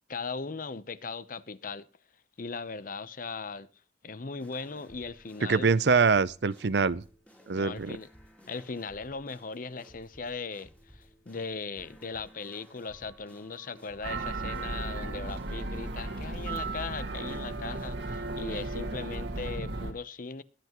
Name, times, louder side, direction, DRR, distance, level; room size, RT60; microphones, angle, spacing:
voice 1, 0.1-1.9 2.4-3.7 4.0-5.8 7.5-8.1 8.5-20.4, left 4 dB, 50° left, 0.8 m, -38 dB
sound 1, 4.4-19.0, equal, 10° left, 2.4 m, -56 dB
voice 2, 5.5-7.0 7.5-8.0, right 5 dB, 70° right, 0.6 m, -24 dB
sound 2, 14.0-19.9, right 2 dB, 85° right, 1.9 m, -35 dB
22.0 x 8.0 x 3.0 m
head